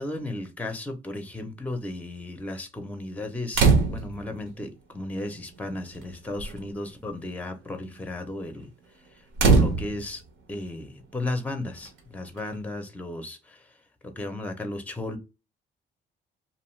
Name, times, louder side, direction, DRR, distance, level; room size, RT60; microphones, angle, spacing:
voice 1, 0.0-8.7 9.4-10.2 10.5-13.7 14.0-15.2, left 2 dB, 5° left, 0.6 m, -34 dB
sound 1, 3.5-4.3 5.3-5.4 5.8-6.1 6.4-6.7 9.4-10.3 11.9-12.0, right 4 dB, 80° right, 0.8 m, -21 dB
2.6 x 2.3 x 3.1 m
cardioid pair, 90°, 20 cm